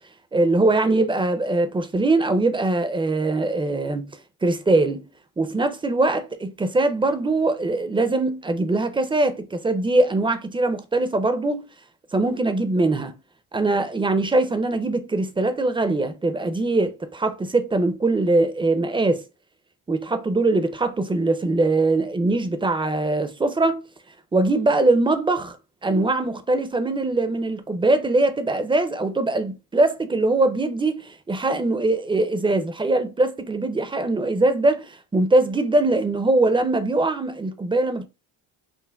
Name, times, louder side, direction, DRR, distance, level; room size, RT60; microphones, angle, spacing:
voice 1, 0.3-4.1 4.4-5.0 5.4-11.6 12.1-13.2 13.5-19.2 19.9-23.9 24.3-25.6 25.8-38.1, right 2 dB, 10° right, 0.4 m, -22 dB
5.7 x 2.1 x 2.2 m
supercardioid pair, 70°, 48 cm